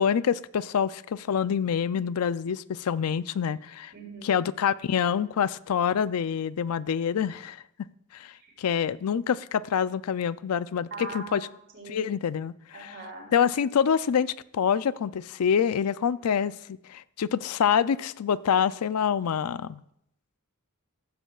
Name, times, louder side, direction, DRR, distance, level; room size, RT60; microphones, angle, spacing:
voice 1, 0.0-3.9 4.2-7.6 8.1-8.3 8.6-11.4 11.9-12.9 13.3-19.8, left 7 dB, 85° left, 17 dB, 0.4 m, -26 dB
voice 2, 3.9-4.4 8.4-8.5 10.9-12.0 12.7-13.3, right 3 dB, 55° right, -1 dB, 4.8 m, -41 dB
15.5 x 14.5 x 2.4 m, 0.76 s
head